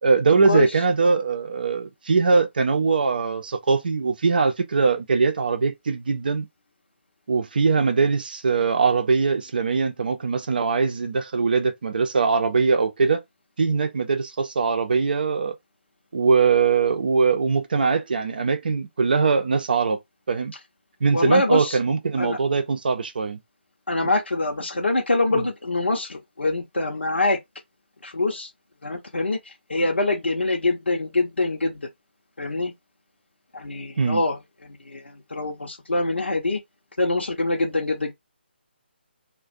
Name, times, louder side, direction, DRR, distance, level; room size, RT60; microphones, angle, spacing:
voice 1, 0.0-6.5 7.3-13.2 13.6-15.6 16.1-20.0 20.3-20.5 21.0-23.4 25.3-25.4 34.0-34.2, right 4 dB, 50° right, 0.5 m, -21 dB
voice 2, 21.1-21.8 22.2-22.4 23.9-27.4 28.0-28.5 28.8-29.4 29.7-31.8 32.4-32.7 33.5-34.4 34.9-35.0 35.3-36.6 37.0-38.1, left 2 dB, 75° left, 0.7 m, -24 dB
2.4 x 2.2 x 2.5 m
figure-of-eight pair, 150°, 6 cm